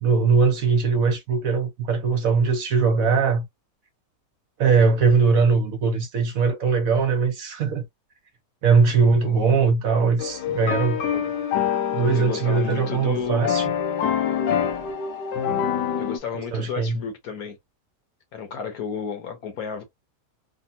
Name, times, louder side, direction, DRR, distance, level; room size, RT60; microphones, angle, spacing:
voice 1, 0.0-3.4 4.6-7.8 8.6-11.0 11.9-13.7 16.3-17.0, right 5 dB, 65° right, 1.1 m, -20 dB
voice 2, 9.2-9.6 11.1-11.3 12.1-13.5 16.0-17.6 18.3-19.8, left 6 dB, 65° left, 1.3 m, -32 dB
sound 1, 10.2-16.2, left 8 dB, 85° left, 1.3 m, -26 dB
3.4 x 2.2 x 2.7 m
omnidirectional pair, 1.8 m